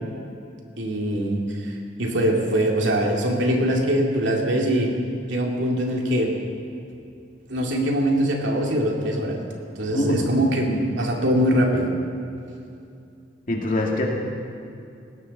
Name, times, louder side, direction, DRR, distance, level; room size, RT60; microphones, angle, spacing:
voice 1, 0.8-4.9 5.3-6.3 7.5-9.4 9.8-11.9, equal, 90° right, 0 dB, 2.4 m, -22 dB
voice 2, 13.5-14.0, left 1 dB, 45° left, -1 dB, 2.5 m, -23 dB
19.5 x 16.5 x 4.2 m, 2.6 s
head